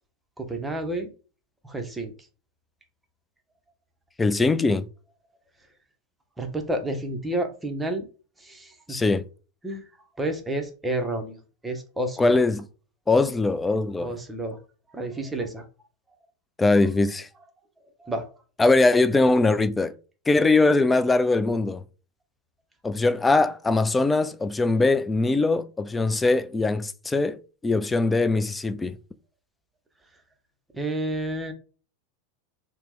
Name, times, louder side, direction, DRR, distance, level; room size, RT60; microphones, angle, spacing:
voice 1, 0.4-1.1 1.6-2.1 6.4-8.1 8.4-9.0 9.6-9.9 10.2-12.4 14.0-14.6 14.9-15.7 18.0-18.3 30.7-31.5, right 1 dB, 10° right, 0.7 m, -30 dB
voice 2, 4.2-4.9 8.9-9.2 12.2-12.7 13.1-14.1 16.6-17.3 18.6-19.9 20.3-21.8 22.8-29.0, left 3 dB, 15° left, 0.3 m, -21 dB
2.8 x 2.0 x 3.5 m
hypercardioid pair, 95°, 0 cm